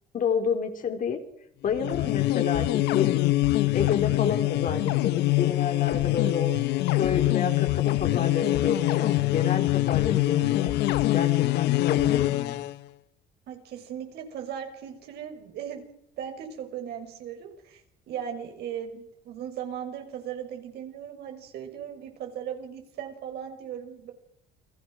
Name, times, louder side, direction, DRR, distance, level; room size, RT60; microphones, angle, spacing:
voice 1, 0.1-1.2 1.6-3.2 3.7-6.5 6.9-10.7 11.1-12.7, left 6 dB, 55° left, 6 dB, 4.0 m, -29 dB
sound 1, 1.7-12.7, left 17 dB, 85° left, 0.9 m, -24 dB
voice 2, 13.5-15.8 16.2-24.1, right 9 dB, 75° right, 5 dB, 6.0 m, -37 dB
29.5 x 20.0 x 6.5 m, 0.75 s
cardioid pair, 110°, 17 cm